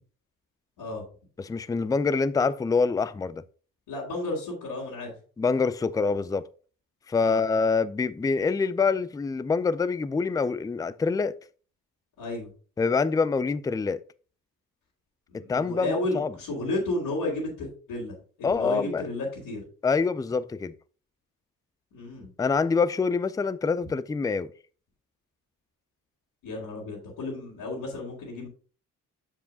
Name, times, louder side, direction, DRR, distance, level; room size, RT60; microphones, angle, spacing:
voice 1, 1.4-3.4 5.4-6.4 7.1-11.3 12.8-14.0 15.3-16.3 18.4-19.0 19.8-20.7 22.4-24.5, left 4 dB, 10° left, 0.4 m, -25 dB
voice 2, 3.9-5.1 7.2-7.4 12.2-12.5 15.3-19.6 21.9-22.3 26.4-28.5, left 2 dB, 70° left, 3.0 m, -32 dB
7.4 x 6.8 x 2.8 m
hypercardioid pair, 50°, 40 cm